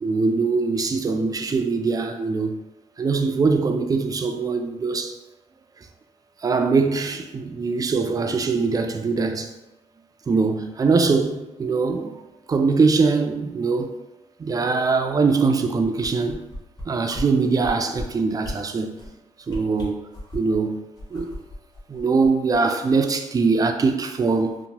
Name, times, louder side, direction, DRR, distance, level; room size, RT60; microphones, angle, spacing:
voice 1, 0.0-2.6 3.0-5.2 6.4-9.5 10.3-12.2 12.5-13.9 14.4-16.4 16.9-19.0 19.5-20.0 20.3-20.8 21.1-21.4 21.9-24.6, right 4 dB, 30° right, 0.3 m, -22 dB
sound 1, 15.8-16.8 17.1-17.3 17.6-18.0 18.4-18.6 18.9-19.1 19.5-20.6 21.0-22.6 22.9-23.0, equal, 30° left, 0.9 m, -35 dB
2.9 x 2.1 x 2.8 m
cardioid pair, 80°, 13 cm